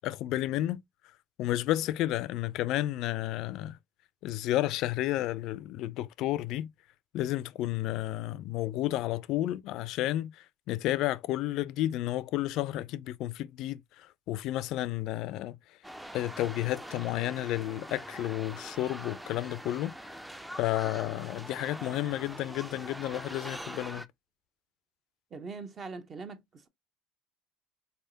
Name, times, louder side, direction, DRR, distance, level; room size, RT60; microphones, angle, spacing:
voice 1, 0.0-0.8 1.4-3.8 4.2-6.7 7.1-15.6 16.1-19.9 20.6-24.1, left 14 dB, 65° left, 0.3 m, -31 dB
sound 1, 15.8-24.1, equal, 5° right, 0.4 m, -43 dB
voice 2, 25.3-26.7, right 4 dB, 35° right, 0.8 m, -42 dB
4.0 x 3.3 x 2.7 m
supercardioid pair, 95°, 0 cm